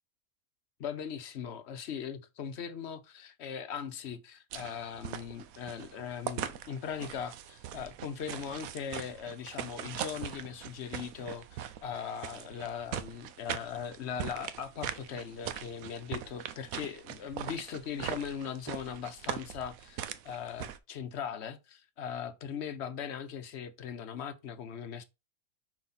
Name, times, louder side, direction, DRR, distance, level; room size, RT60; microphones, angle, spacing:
voice 1, 0.8-20.0 20.2-25.0, left 7 dB, 55° left, 0.9 m, -39 dB
sound 1, 4.5-20.8, right 10 dB, 75° right, 1.0 m, -41 dB
5.7 x 4.8 x 4.0 m
omnidirectional pair, 1.5 m